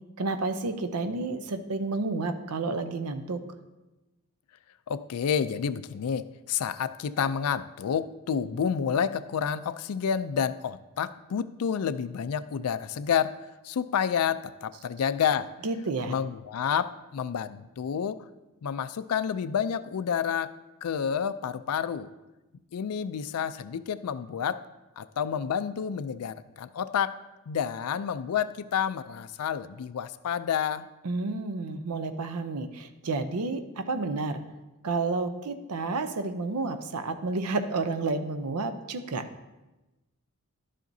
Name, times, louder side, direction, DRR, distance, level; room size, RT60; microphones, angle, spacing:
voice 1, 0.2-3.4 15.6-16.1 31.0-34.4 34.8-39.3, right 3 dB, 90° right, 10 dB, 0.6 m, -30 dB
voice 2, 4.9-15.5 16.1-18.3 18.6-20.6 20.8-22.1 22.7-24.7 25.0-27.2 27.5-30.9, left 7 dB, 80° left, 14 dB, 0.4 m, -29 dB
11.5 x 7.5 x 2.7 m, 1.1 s
head